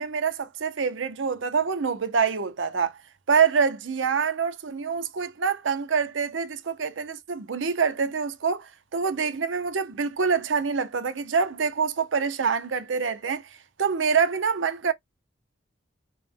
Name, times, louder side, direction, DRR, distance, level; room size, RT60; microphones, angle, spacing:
voice 1, 0.0-3.0 3.3-13.5 13.8-14.9, right 6 dB, 80° right, 0.6 m, -26 dB
4.7 x 2.1 x 3.4 m
head